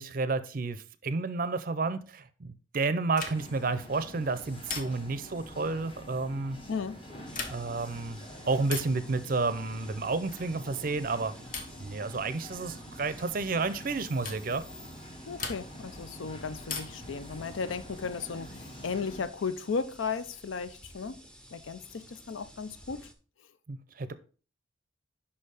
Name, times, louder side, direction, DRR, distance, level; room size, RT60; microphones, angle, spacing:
voice 1, 0.0-6.6 7.5-11.3 11.8-14.6 23.7-24.1, right 3 dB, 45° right, 0.5 m, -31 dB
sound 1, 3.1-3.7 4.7-5.3 7.2-7.8 8.6-9.0 10.3-10.6 11.5-11.9 13.2-13.4 14.2-14.5 15.4-15.9 16.7-17.1 18.6-19.3, left 4 dB, 45° left, 1.1 m, -40 dB
sound 2, 3.3-19.3, equal, 30° left, 1.2 m, -47 dB
voice 2, 6.7-7.0 15.3-21.2 21.5-23.1, left 5 dB, 80° left, 0.5 m, -35 dB
sound 3, 7.3-23.1, equal, 5° left, 0.6 m, -53 dB
5.6 x 4.5 x 4.8 m
head